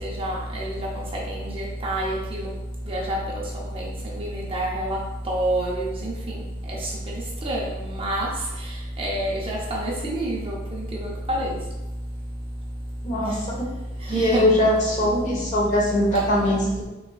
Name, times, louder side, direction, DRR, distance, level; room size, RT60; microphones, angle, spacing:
voice 1, 0.0-0.8 1.3-2.5 2.9-3.4 3.7-5.0 5.3-6.1 6.7-6.8 7.4-8.3 9.0-11.6 13.2-13.3 14.1-14.4 16.4-16.7, right 1 dB, 25° right, -3 dB, 0.7 m, -28 dB
voice 2, 13.0-13.6 14.1-16.8, left 1 dB, 35° left, -4 dB, 1.1 m, -21 dB
5.4 x 3.6 x 2.4 m, 1.0 s
head